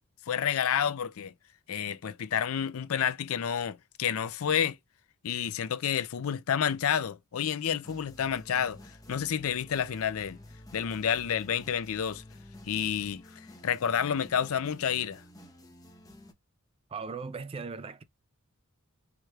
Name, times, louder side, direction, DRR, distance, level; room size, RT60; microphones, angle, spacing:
voice 1, 0.3-1.3 1.7-4.8 5.2-8.8 9.1-10.4 10.7-12.2 12.7-13.2 13.6-15.2, left 8 dB, 65° left, 0.4 m, -29 dB
sound 1, 7.8-16.3, left 1 dB, 15° left, 0.8 m, -51 dB
voice 2, 16.9-18.0, right 5 dB, 25° right, 0.4 m, -38 dB
4.7 x 3.0 x 2.3 m
head